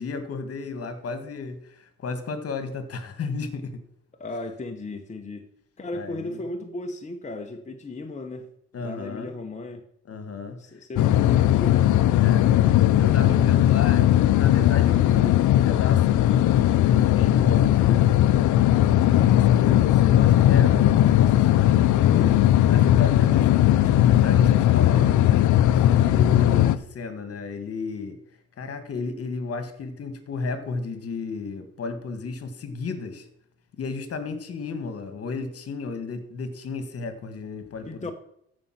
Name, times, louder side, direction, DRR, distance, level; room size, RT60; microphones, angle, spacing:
voice 1, 0.0-3.8 5.9-6.4 8.7-9.3 10.1-10.6 12.2-12.5 13.0-18.1 18.8-22.4 22.7-25.3 25.7-28.2 28.6-33.3 33.8-38.1, left 4 dB, 50° left, 10 dB, 1.7 m, -33 dB
voice 2, 4.2-5.5 5.8-8.5 8.8-9.8 10.6-11.9 37.8-38.1, left 2 dB, 25° left, 3 dB, 1.1 m, -35 dB
sound 1, 11.0-26.8, left 12 dB, 75° left, 0.6 m, -18 dB
14.0 x 5.4 x 5.9 m, 0.72 s
cardioid pair, 90°, 30 cm